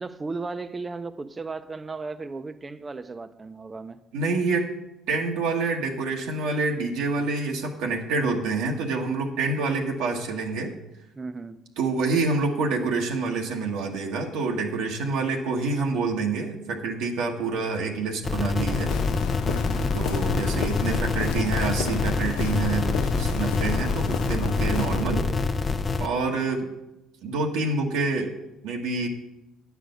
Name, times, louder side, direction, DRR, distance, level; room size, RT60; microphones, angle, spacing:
voice 1, 0.0-4.0 11.2-11.6 19.5-19.9, right 3 dB, 25° right, 0.7 m, -35 dB
voice 2, 4.1-4.7 5.1-10.7 11.8-18.9 19.9-25.3 26.0-26.7 27.2-28.3 28.6-29.1, right 3 dB, 85° right, 1.4 m, -27 dB
sound 1, 18.2-26.1, left 3 dB, 30° left, 0.6 m, -26 dB
Walk footsteps, 18.7-25.0, left 10 dB, 90° left, 0.4 m, -33 dB
9.4 x 4.9 x 7.9 m
supercardioid pair, 85°, 0 cm